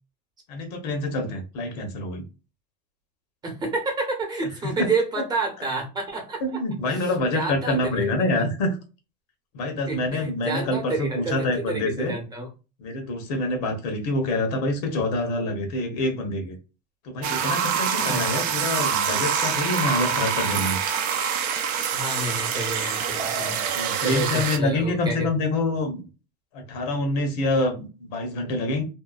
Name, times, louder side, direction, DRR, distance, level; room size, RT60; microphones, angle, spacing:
voice 1, 0.5-2.2 4.8-4.9 6.4-8.8 9.5-12.1 12.8-16.6 17.0-20.8 23.4-26.0 26.5-28.8, left 2 dB, 75° left, 5 dB, 1.0 m, -26 dB
voice 2, 3.4-6.6 7.3-8.3 9.9-12.5 17.9-18.5 21.9-23.6 24.0-25.3, right 2 dB, 20° right, 2 dB, 0.9 m, -29 dB
sound 1, 17.2-24.6, right 7 dB, 45° right, 0.5 m, -25 dB
2.7 x 2.1 x 2.3 m, 0.31 s
supercardioid pair, 130°, 21 cm